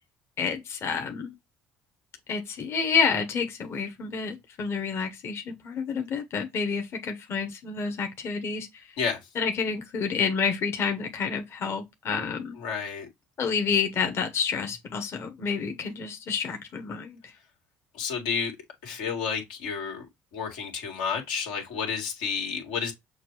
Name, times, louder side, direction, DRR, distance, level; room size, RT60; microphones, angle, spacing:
voice 1, 0.4-1.3 2.3-8.9 9.4-12.6 13.4-17.3, left 5 dB, 45° left, 0.9 m, -29 dB
voice 2, 12.6-13.1 17.9-18.5 18.8-20.1 20.3-22.9, left 6 dB, 90° left, 1.8 m, -30 dB
6.4 x 2.3 x 3.0 m
supercardioid pair, 85°, 6 cm